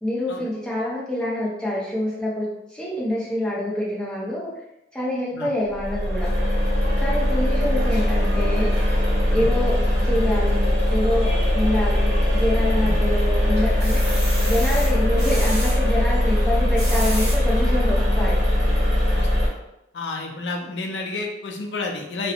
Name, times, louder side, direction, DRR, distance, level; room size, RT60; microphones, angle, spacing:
voice 1, 0.0-4.5 4.9-6.3 7.0-8.7 9.3-10.6 10.9-14.0 14.4-18.4, left 1 dB, 5° left, -6 dB, 0.6 m, -26 dB
sound 1, 5.7-19.5, left 1 dB, 65° right, 0.7 m, -20 dB
sound 2, 12.5-13.1 13.6-15.8 16.5-17.4 18.0-18.1 18.4-18.5, right 1 dB, 40° right, 1.2 m, -32 dB
voice 2, 19.9-22.3, left 3 dB, 80° left, 2 dB, 0.4 m, -30 dB
2.6 x 2.0 x 2.8 m, 0.86 s
head